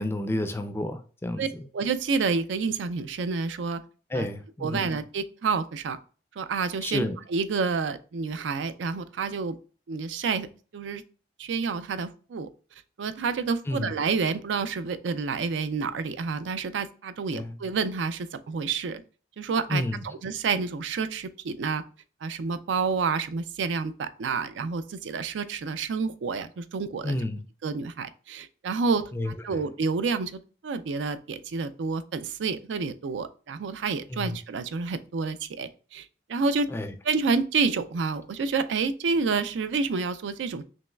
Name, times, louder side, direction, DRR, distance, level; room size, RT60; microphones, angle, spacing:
voice 1, 0.0-1.6 4.1-4.9 6.8-7.2 13.7-13.9 17.3-17.6 19.7-20.0 27.0-27.4 29.1-29.3 34.1-34.4 36.7-36.9, left 1 dB, 15° left, 0.3 m, -30 dB
voice 2, 1.7-3.8 4.1-4.3 4.6-6.0 6.4-9.6 9.9-10.5 10.7-11.0 11.4-12.5 13.0-19.0 19.4-21.8 22.2-27.2 27.6-36.7 37.0-40.6, right 4 dB, 90° right, 0.4 m, -29 dB
5.3 x 3.0 x 2.3 m
head